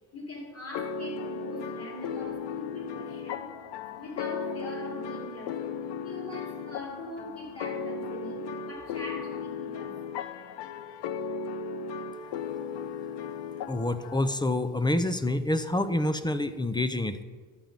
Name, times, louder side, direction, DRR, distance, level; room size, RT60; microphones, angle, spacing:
voice 1, 0.1-3.5 3.9-5.6 6.0-10.0, left 2 dB, 30° left, -1 dB, 4.0 m, -41 dB
sound 1, 0.7-14.5, left 5 dB, 65° left, 0.8 m, -36 dB
voice 2, 13.7-17.2, left 1 dB, 10° left, 12 dB, 0.6 m, -27 dB
11.5 x 7.9 x 5.2 m, 1.5 s
supercardioid pair, 70°, 45 cm